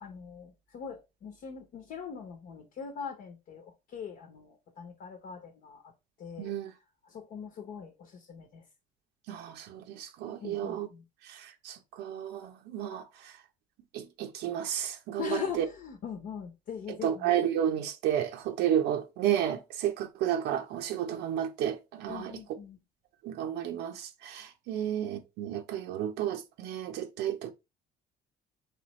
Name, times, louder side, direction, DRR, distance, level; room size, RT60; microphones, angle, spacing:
voice 1, 0.0-5.8 6.2-6.5 7.0-8.6 10.4-11.0 15.2-17.3 22.1-22.8 24.7-24.9, left 7 dB, 60° left, 1.0 m, -41 dB
voice 2, 6.4-6.7 9.3-10.9 11.2-13.4 13.9-15.6 17.0-22.4 23.2-27.5, right 10 dB, 85° right, 0.6 m, -32 dB
4.4 x 3.2 x 3.1 m
cardioid pair, 110°, 17 cm